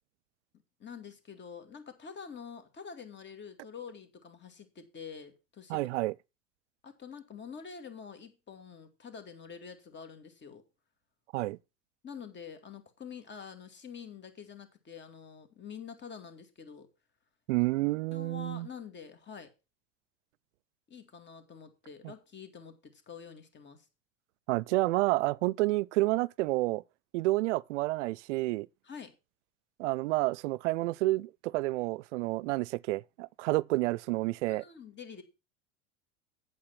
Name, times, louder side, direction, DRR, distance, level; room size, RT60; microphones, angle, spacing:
voice 1, 0.8-5.9 6.8-10.6 12.0-16.9 18.1-19.5 20.9-23.9 28.8-29.1 34.5-35.2, left 6 dB, 30° left, 2.4 m, -47 dB
voice 2, 5.7-6.1 11.3-11.6 17.5-18.7 24.5-26.8 27.1-28.7 29.8-34.6, right 20 dB, 70° right, 0.5 m, -29 dB
8.7 x 7.6 x 5.8 m
hypercardioid pair, 90°, 37 cm